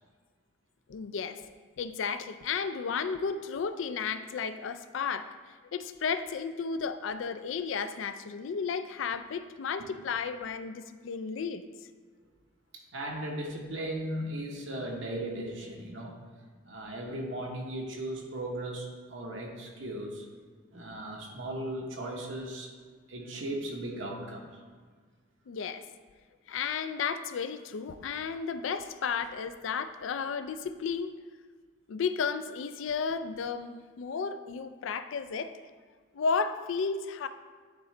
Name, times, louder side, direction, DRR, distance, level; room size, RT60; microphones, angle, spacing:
voice 1, 0.9-1.5 1.8-11.6 25.5-25.8 26.5-31.1 31.9-35.5 36.1-37.3, left 5 dB, 80° left, 11 dB, 0.4 m, -33 dB
voice 2, 12.7-16.2 16.6-20.2 20.7-22.7 23.1-24.5, right 1 dB, 80° right, 0 dB, 1.1 m, -37 dB
10.5 x 3.8 x 3.3 m, 1.5 s
head